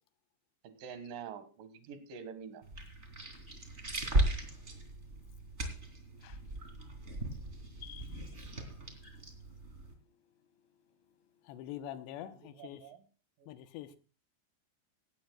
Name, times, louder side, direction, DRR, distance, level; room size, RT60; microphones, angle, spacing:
voice 1, 0.6-2.6 12.4-13.0 13.4-13.5, right 6 dB, 60° right, 2.8 m, -46 dB
sound 1, 2.6-9.9, right 1 dB, 20° right, 2.2 m, -37 dB
voice 2, 4.5-11.6, left 12 dB, 65° left, 3.2 m, -62 dB
voice 3, 11.4-12.8 13.5-14.0, left 12 dB, 80° left, 3.0 m, -44 dB
17.5 x 16.0 x 2.3 m
omnidirectional pair, 5.1 m